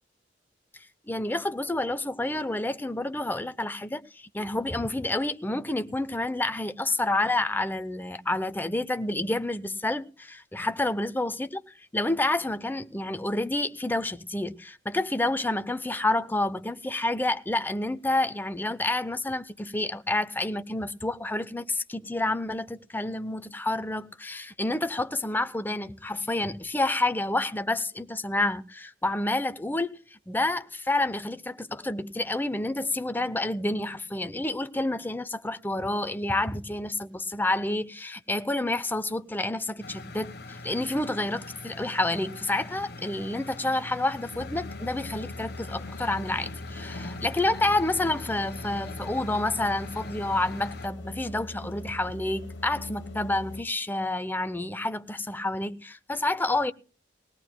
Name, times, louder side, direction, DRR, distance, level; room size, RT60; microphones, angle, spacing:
voice 1, 1.1-11.6 11.9-56.7, left 2 dB, 10° left, 0.6 m, -29 dB
sound 1, 39.8-50.9, left 2 dB, 60° left, 1.3 m, -42 dB
sound 2, 44.3-53.6, left 2 dB, 80° left, 1.0 m, -41 dB
20.5 x 17.5 x 2.2 m
head